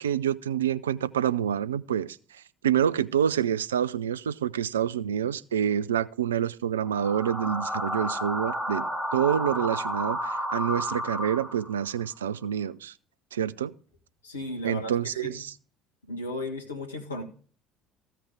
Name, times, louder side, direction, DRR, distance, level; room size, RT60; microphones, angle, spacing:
voice 1, 0.0-12.9 13.3-13.7 14.6-15.5, right 9 dB, 75° right, 0.4 m, -27 dB
sound 1, 6.9-11.9, equal, 5° right, 2.6 m, -32 dB
voice 2, 14.2-15.3 16.1-17.2, left 1 dB, 80° left, 1.6 m, -35 dB
14.5 x 5.9 x 4.7 m
figure-of-eight pair, 60°, 0 cm